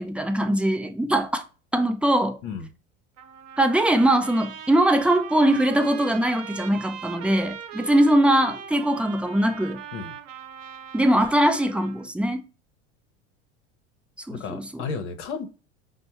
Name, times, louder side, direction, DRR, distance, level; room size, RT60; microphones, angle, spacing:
voice 1, 0.0-1.4 1.7-2.4 3.6-9.8 10.9-12.4 14.3-14.8, right 1 dB, 5° right, 0.4 m, -21 dB
Trumpet, 3.2-12.1, right 9 dB, 80° right, 0.7 m, -40 dB
voice 2, 14.3-15.5, left 5 dB, 65° left, 0.8 m, -33 dB
5.2 x 2.1 x 2.8 m
hypercardioid pair, 80°, 37 cm